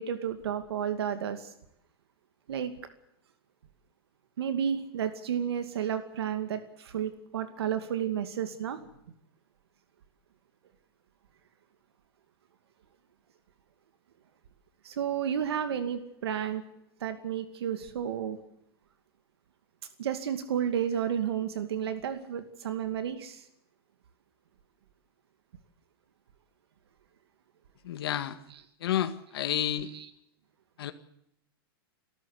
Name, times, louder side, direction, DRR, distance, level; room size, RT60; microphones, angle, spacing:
voice 1, 0.0-1.5 2.5-2.7 4.4-8.8 14.8-16.6 17.0-18.4 20.0-23.5 28.5-28.6 29.8-30.1, right 9 dB, 90° right, 9 dB, 2.4 m, -32 dB
voice 2, 27.8-28.4 28.8-29.9 30.8-30.9, left 11 dB, 75° left, 9 dB, 1.9 m, -30 dB
28.5 x 13.5 x 8.5 m, 0.79 s
supercardioid pair, 160°, 13 cm